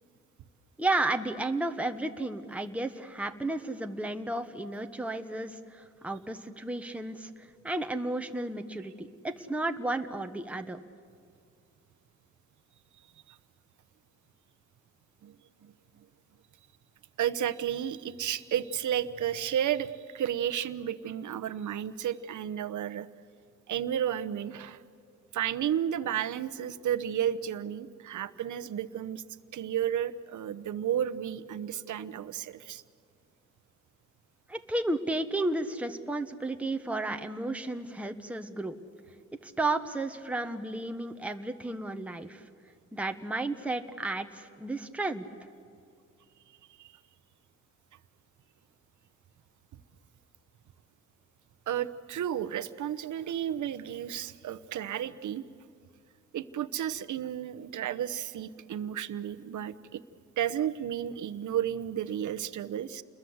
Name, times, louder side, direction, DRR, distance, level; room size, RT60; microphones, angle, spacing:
voice 1, 0.8-10.8 34.5-38.7 39.4-42.4 42.9-45.3, right 2 dB, 5° right, 6 dB, 1.1 m, -33 dB
voice 2, 17.2-23.1 23.7-24.8 25.3-29.2 29.5-32.8 46.8-46.9 51.7-55.4 56.3-60.0 60.4-63.0, right 10 dB, 80° right, 12 dB, 1.0 m, -32 dB
29.0 x 21.5 x 8.0 m, 2.3 s
cardioid pair, 95°, 30 cm